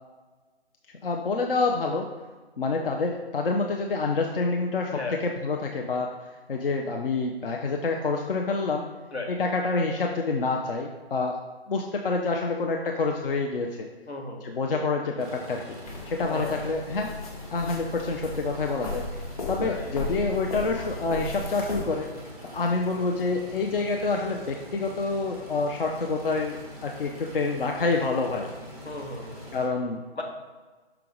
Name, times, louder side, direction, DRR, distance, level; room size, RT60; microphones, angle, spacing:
voice 1, 1.0-2.1 2.6-6.1 6.5-8.9 9.3-11.4 11.7-13.9 14.4-15.8 16.1-17.1 17.5-19.1 19.5-22.1 22.5-28.5 29.5-30.0, left 3 dB, 60° left, 1 dB, 0.7 m, -27 dB
voice 2, 4.9-5.2 9.1-9.3 14.1-14.5 16.3-16.7 19.5-19.9 28.8-29.4 30.1-30.2, left 2 dB, 85° left, 1 dB, 1.5 m, -35 dB
sound 1, 15.2-29.7, equal, 5° left, 0.5 m, -44 dB
sound 2, 15.9-21.8, left 2 dB, 35° left, 1.0 m, -36 dB
6.0 x 4.6 x 3.8 m, 1.3 s
figure-of-eight pair, 145°, 32 cm